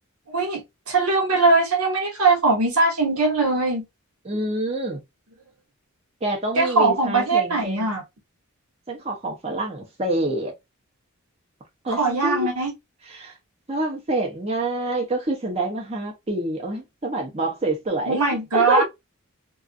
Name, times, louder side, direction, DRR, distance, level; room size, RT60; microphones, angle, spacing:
voice 1, 0.3-3.8 6.6-8.0 11.9-12.7 18.1-18.8, right 3 dB, 85° right, 0.9 m, -21 dB
voice 2, 4.2-5.0 6.2-7.9 8.9-10.5 11.8-12.5 13.1-13.4 13.7-18.2 18.5-18.8, right 2 dB, 30° right, 0.6 m, -26 dB
2.4 x 2.3 x 2.3 m
head